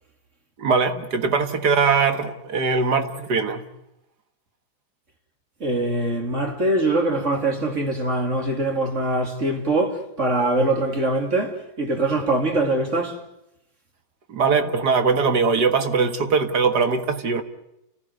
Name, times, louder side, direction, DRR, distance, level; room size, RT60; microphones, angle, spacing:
voice 1, 0.6-3.7 14.3-17.4, right 5 dB, 60° right, 2.1 m, -21 dB
voice 2, 5.6-13.2, right 2 dB, 40° right, 3.0 m, -23 dB
30.0 x 15.0 x 9.4 m
omnidirectional pair, 2.1 m